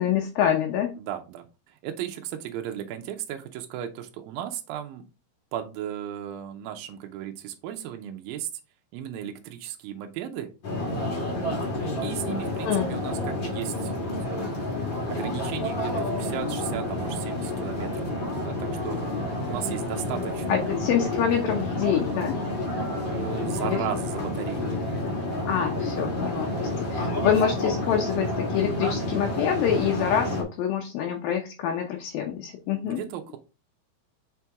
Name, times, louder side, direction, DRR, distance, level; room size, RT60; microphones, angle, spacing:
voice 1, 0.0-0.9 12.6-12.9 20.5-22.4 23.6-23.8 25.5-33.0, left 8 dB, 75° left, 3 dB, 2.3 m, -26 dB
voice 2, 1.0-5.0 5.5-8.5 8.9-10.5 12.0-13.9 14.3-14.5 15.1-19.0 19.4-20.8 23.1-24.7 30.1-30.3 32.8-33.4, right 10 dB, 75° right, 4 dB, 2.2 m, -35 dB
sound 1, 10.6-30.4, left 1 dB, 50° left, 1.4 m, -29 dB
6.1 x 4.3 x 3.5 m, 0.31 s
omnidirectional pair, 4.7 m